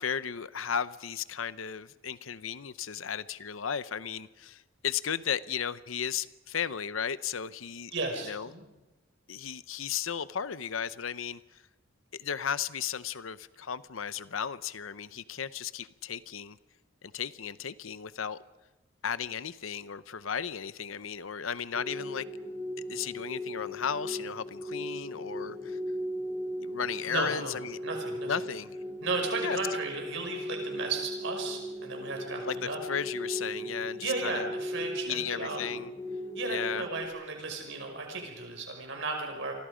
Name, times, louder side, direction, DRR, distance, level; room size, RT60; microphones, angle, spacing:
voice 1, 0.0-7.9 8.2-8.5 9.3-11.6 12.1-16.6 17.0-18.4 19.0-22.3 22.9-25.8 26.6-27.8 28.3-28.8 29.4-29.6 32.5-34.5 35.1-35.9 36.5-36.9, left 7 dB, 85° left, 15 dB, 0.8 m, -35 dB
voice 2, 7.9-8.6 27.1-27.5 27.8-28.3 29.0-32.8 34.0-35.6 36.3-39.5, right 3 dB, 65° right, 3 dB, 5.7 m, -35 dB
sound 1, 21.7-37.1, equal, 15° left, 3.4 m, -37 dB
29.5 x 24.0 x 5.1 m, 1.1 s
head